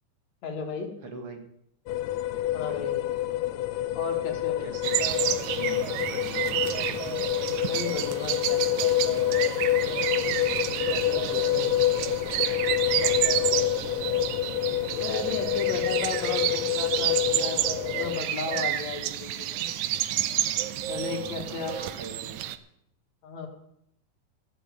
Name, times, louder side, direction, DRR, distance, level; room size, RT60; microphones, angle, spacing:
voice 1, 0.4-0.9 2.5-3.1 4.0-4.7 7.6-8.9 14.9-17.7 17.9-19.7 20.9-22.1 23.2-23.5, left 5 dB, 60° left, 3 dB, 2.8 m, -35 dB
voice 2, 1.0-1.4 2.5-2.8 4.6-5.1 5.5-6.9 10.8-11.8 12.9-13.9 21.1-22.4, right 4 dB, 50° right, 4 dB, 2.5 m, -42 dB
sound 1, 1.9-18.2, left 14 dB, 80° left, 1.6 m, -27 dB
sound 2, 4.8-22.6, right 12 dB, 75° right, 1.9 m, -30 dB
14.5 x 7.5 x 8.2 m, 0.74 s
omnidirectional pair, 3.8 m